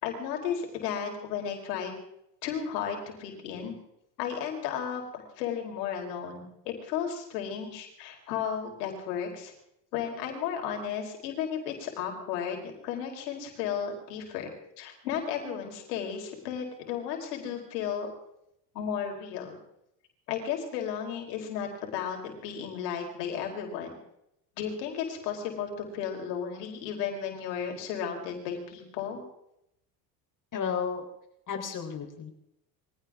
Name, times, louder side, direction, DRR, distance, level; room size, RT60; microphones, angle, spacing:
voice 1, 0.0-1.9 2.4-3.7 4.2-9.5 9.9-14.5 14.8-18.1 18.7-19.6 20.3-24.0 24.6-29.2, left 8 dB, 80° left, 2 dB, 4.6 m, -34 dB
voice 2, 30.5-31.0 31.5-32.3, left 7 dB, 40° left, 3 dB, 4.0 m, -32 dB
23.5 x 16.5 x 3.7 m, 0.79 s
hypercardioid pair, 90°, 48 cm